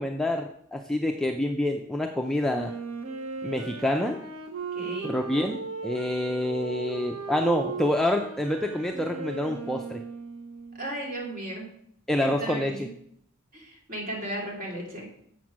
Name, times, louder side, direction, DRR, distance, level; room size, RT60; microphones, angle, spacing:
voice 1, 0.0-2.7 3.4-4.2 5.0-10.0 12.1-12.7, left 1 dB, ahead, 2 dB, 0.4 m, -27 dB
Wind instrument woodwind instrument, 2.4-11.0, right 4 dB, 60° right, 1.0 m, -37 dB
voice 2, 4.7-5.2 10.7-11.7 12.2-12.9 13.5-15.1, right 1 dB, 40° right, -2 dB, 2.7 m, -35 dB
7.2 x 6.0 x 6.1 m, 0.68 s
head